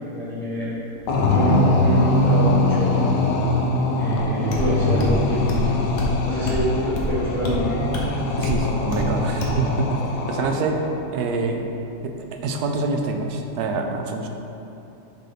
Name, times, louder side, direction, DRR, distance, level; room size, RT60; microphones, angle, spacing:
voice 1, 0.1-0.7 1.3-3.0 4.0-5.6 6.2-7.8, equal, ahead, -9 dB, 0.7 m, -26 dB
sound 1, 1.1-11.0, left 2 dB, 90° left, 1.3 m, -22 dB
sound 2, 4.5-4.7 5.0-5.2 5.5-5.7 6.0-6.1 6.5-6.6 7.0-7.1 7.4-7.6 7.9-8.1 8.4-8.6 8.9-9.1 9.4-9.6, left 1 dB, 75° left, 1.5 m, -26 dB
voice 2, 8.4-11.7 12.0-14.3, right 3 dB, 75° right, 4 dB, 1.1 m, -26 dB
6.0 x 3.4 x 5.7 m, 2.9 s
omnidirectional pair, 1.8 m